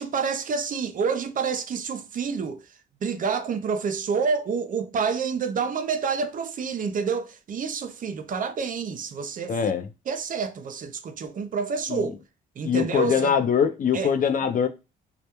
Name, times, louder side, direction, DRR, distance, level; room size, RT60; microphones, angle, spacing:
voice 1, 0.0-2.6 3.0-9.5 10.1-12.2 12.6-13.3 13.9-14.1, right 5 dB, 45° right, 0.4 m, -28 dB
voice 2, 9.5-9.9 11.9-12.1 12.6-14.7, left 7 dB, 45° left, 0.4 m, -23 dB
2.2 x 2.1 x 2.8 m
cardioid pair, 90°, 20 cm